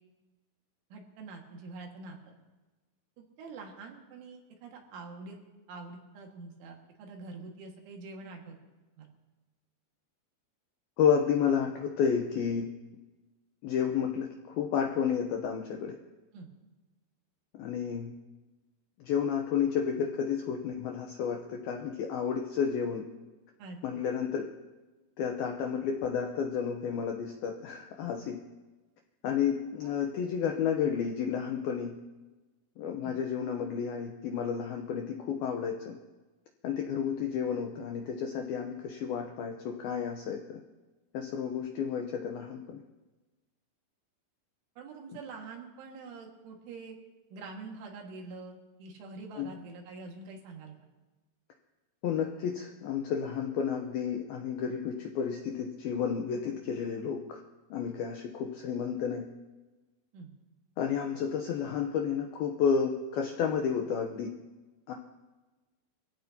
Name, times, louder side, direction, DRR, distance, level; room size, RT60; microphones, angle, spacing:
voice 1, 0.9-2.3 3.2-5.4 5.7-8.6 9.0-9.1 16.3-16.5 23.6-24.0 33.0-33.2 44.8-47.0 47.3-50.8 56.6-56.7 60.1-60.3, right 3 dB, 80° right, 1 dB, 4.3 m, -45 dB
voice 2, 11.0-12.7 13.6-16.0 17.6-18.1 19.0-23.1 23.8-24.5 25.2-28.4 29.2-31.9 32.8-36.0 36.6-40.6 41.1-42.8 49.4-49.5 52.0-57.4 57.7-59.3 60.8-64.3 64.9-65.0, left 7 dB, 80° left, 3 dB, 2.2 m, -31 dB
25.0 x 16.0 x 2.9 m, 1.2 s
omnidirectional pair, 5.5 m